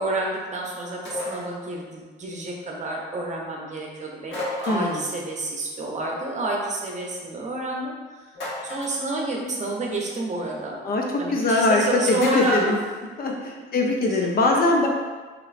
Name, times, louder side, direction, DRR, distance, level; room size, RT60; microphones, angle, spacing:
voice 1, 0.0-8.3 8.6-10.8 11.2-12.8 13.2-13.3 14.1-14.6, right 2 dB, 35° right, -1 dB, 0.7 m, -29 dB
sound 1, 1.0-1.5 4.3-5.1 8.3-9.0 12.1-12.7, left 2 dB, 75° left, 1.1 m, -33 dB
voice 2, 4.7-5.0 10.8-11.0 11.3-12.8 13.2-14.9, left 2 dB, 50° left, 0 dB, 0.6 m, -22 dB
3.0 x 2.9 x 2.5 m, 1.4 s
cardioid pair, 90°, 20 cm